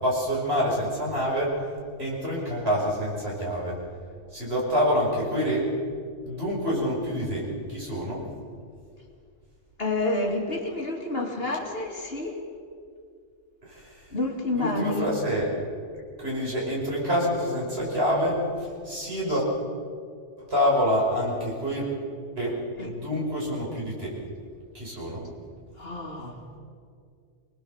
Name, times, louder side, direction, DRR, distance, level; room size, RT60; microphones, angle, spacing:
voice 1, 0.0-1.6 2.0-3.8 4.3-5.7 6.3-8.2 13.6-14.0 14.5-15.5 16.2-19.5 20.4-21.9 22.4-22.6 22.9-24.2 24.7-25.3, equal, 55° right, -4 dB, 6.1 m, -27 dB
voice 2, 9.8-12.4 14.1-15.1 19.3-19.4 22.8-22.9 25.8-26.6, left 2 dB, 50° left, 1 dB, 2.9 m, -29 dB
26.0 x 19.5 x 7.2 m, 2.2 s
omnidirectional pair, 1.3 m